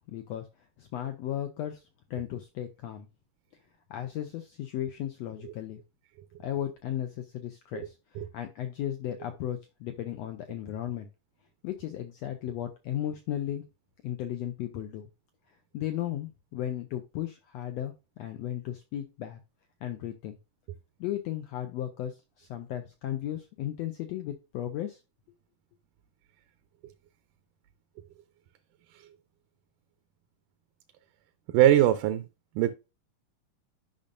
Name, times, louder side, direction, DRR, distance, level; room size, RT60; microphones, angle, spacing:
voice 1, 0.1-0.5 0.8-1.8 2.1-3.1 3.9-5.8 6.4-11.1 11.6-13.6 14.0-15.1 15.7-19.4 19.8-20.4 21.0-25.0, left 11 dB, 85° left, 7 dB, 1.4 m, -35 dB
voice 2, 31.5-32.3 32.6-32.7, right 12 dB, 80° right, 10 dB, 2.0 m, -21 dB
10.5 x 5.4 x 2.5 m, 0.28 s
omnidirectional pair, 3.7 m